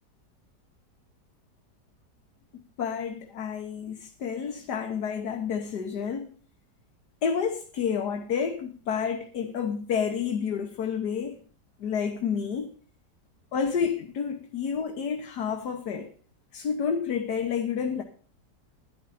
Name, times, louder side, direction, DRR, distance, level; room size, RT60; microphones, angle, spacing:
voice 1, 2.5-6.3 7.2-11.4 11.8-12.7 13.5-16.1 16.5-18.0, left 7 dB, 70° left, 1.7 m, -29 dB
13.0 x 11.0 x 4.1 m
omnidirectional pair, 1.9 m